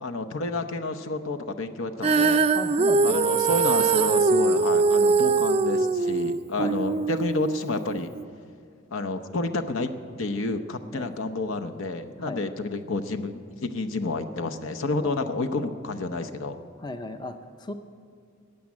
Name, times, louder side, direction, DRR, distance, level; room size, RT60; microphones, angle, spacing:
voice 1, 0.0-2.4 3.0-8.1 8.9-9.9 10.2-16.6, left 2 dB, 70° left, 7 dB, 0.8 m, -30 dB
Female singing, 2.0-8.2, right 4 dB, 30° right, 0.4 m, -22 dB
voice 2, 2.5-3.2 6.6-6.8 10.9-11.1 12.2-12.4 15.0-15.2 16.8-17.7, left 2 dB, 20° left, 8 dB, 0.5 m, -35 dB
13.5 x 8.6 x 9.6 m, 2.2 s
head